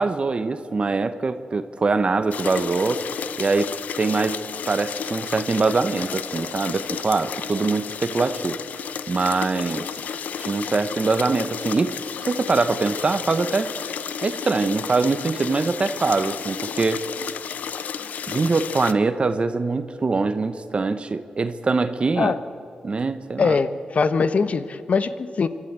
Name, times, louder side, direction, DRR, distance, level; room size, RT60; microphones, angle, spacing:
voice 1, 0.0-3.0 3.4-4.4 4.7-8.6 9.1-10.0 10.4-12.0 12.2-13.7 14.2-17.0 18.3-22.3 22.8-23.6, right 3 dB, 45° right, 11 dB, 0.9 m, -23 dB
sound 1, 2.3-18.9, left 7 dB, 85° left, 0.6 m, -32 dB
voice 2, 23.4-25.5, left 5 dB, 60° left, 12 dB, 1.0 m, -22 dB
25.0 x 12.5 x 8.7 m, 2.7 s
cardioid pair, 65°, 3 cm